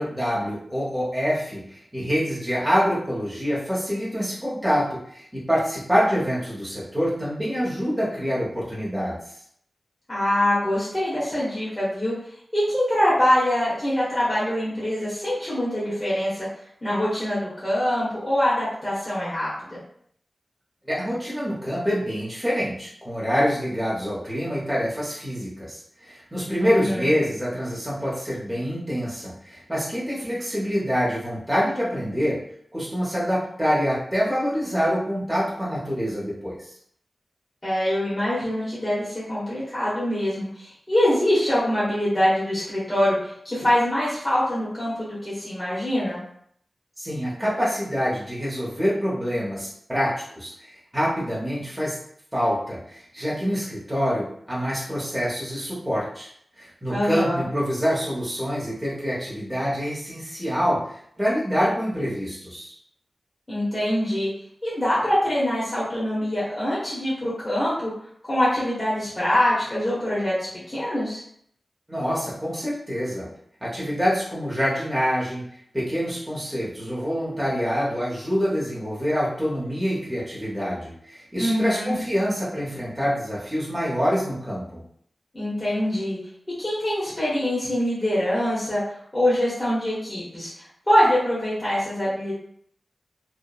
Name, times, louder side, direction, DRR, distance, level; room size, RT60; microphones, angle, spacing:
voice 1, 0.0-9.2 20.9-32.4 32.7-36.7 47.0-50.5 50.9-52.0 52.3-56.3 56.6-60.8 61.2-62.7 71.9-73.3 73.6-75.4 75.7-84.8, equal, 10° right, -7 dB, 0.7 m, -26 dB
voice 2, 10.1-12.1 12.5-16.3 16.8-19.8 26.6-27.1 37.6-46.2 56.9-57.4 63.5-64.3 64.6-67.9 68.2-71.2 81.4-81.9 85.3-86.2 86.6-88.8 89.1-92.3, left 1 dB, 20° left, -10 dB, 1.0 m, -24 dB
2.8 x 2.1 x 2.3 m, 0.66 s
wide cardioid pair, 85°, 0 cm